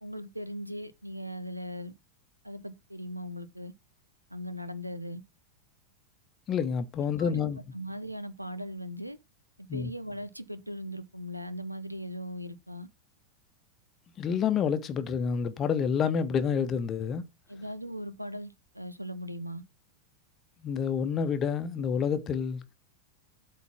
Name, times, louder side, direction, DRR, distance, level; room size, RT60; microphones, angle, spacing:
voice 1, 0.0-1.9 2.4-3.7 4.3-5.2 7.2-9.2 9.7-12.9 17.5-19.6, equal, 85° right, 0.7 m, -39 dB
voice 2, 6.5-7.6 9.7-9.9 14.2-17.2 20.6-22.6, left 7 dB, 30° left, 1.0 m, -28 dB
8.3 x 3.8 x 5.9 m
figure-of-eight pair, 90°, 0 cm